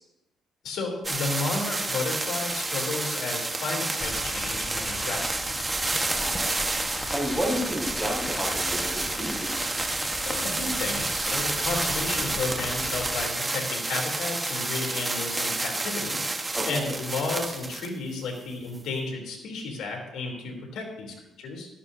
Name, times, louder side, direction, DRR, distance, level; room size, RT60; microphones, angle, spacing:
voice 1, 0.6-5.3 10.2-16.2 16.6-21.7, left 3 dB, 80° left, 0 dB, 3.2 m, -33 dB
sound 1, 1.0-17.9 18.7-18.8, right 2 dB, 20° right, 1.2 m, -30 dB
sound 2, 4.0-13.3, left 1 dB, 15° left, 1.1 m, -37 dB
voice 2, 6.1-9.7 16.5-16.9, equal, ahead, -3 dB, 5.0 m, -32 dB
16.5 x 14.0 x 2.7 m, 0.98 s
cardioid pair, 90°, 0 cm